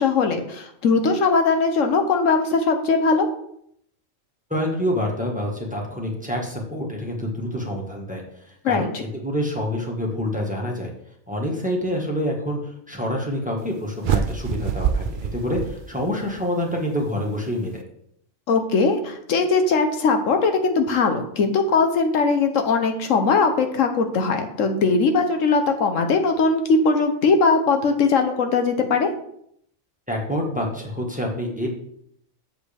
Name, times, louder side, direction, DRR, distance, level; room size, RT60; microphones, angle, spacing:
voice 1, 0.0-3.3 8.6-9.0 18.5-29.1, left 4 dB, 75° left, 5 dB, 1.3 m, -20 dB
voice 2, 4.5-8.9 9.2-10.9 11.3-17.8 30.1-31.7, equal, 5° right, -1 dB, 1.4 m, -27 dB
sound 1, 14.0-16.4, right 7 dB, 60° right, 0.5 m, -25 dB
7.8 x 7.3 x 3.4 m, 0.70 s
omnidirectional pair, 1.4 m